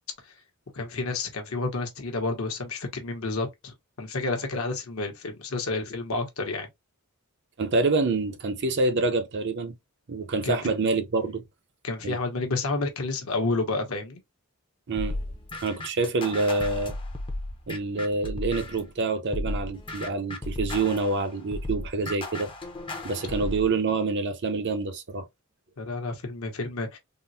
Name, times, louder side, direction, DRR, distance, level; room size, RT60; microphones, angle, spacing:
voice 1, 0.7-6.7 10.4-10.7 11.8-14.2 25.8-27.0, left 3 dB, 65° left, 0.9 m, -30 dB
voice 2, 7.6-9.7 10.1-11.4 12.0-12.2 14.9-15.2 15.6-17.0 17.7-22.5 23.0-25.3, right 3 dB, 50° right, 0.6 m, -27 dB
sound 1, 15.0-18.9 19.3-23.7, left 2 dB, 25° left, 0.6 m, -35 dB
3.7 x 2.0 x 2.6 m
head